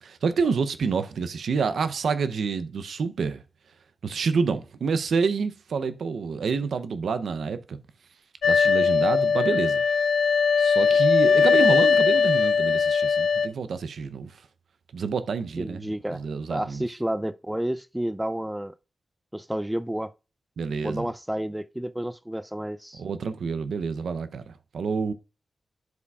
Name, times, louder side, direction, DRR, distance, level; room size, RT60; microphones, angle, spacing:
voice 1, 0.0-3.4 4.0-7.8 8.4-9.8 10.6-14.4 14.9-16.9 20.6-21.1 23.0-25.1, right 5 dB, 90° right, 0.6 m, -28 dB
sound 1, 8.4-13.5, left 5 dB, 90° left, 0.4 m, -20 dB
voice 2, 15.6-16.2 16.5-18.7 19.3-20.1 20.8-23.0, right 1 dB, 10° right, 0.4 m, -30 dB
11.5 x 4.9 x 2.3 m
cardioid pair, 75°, 0 cm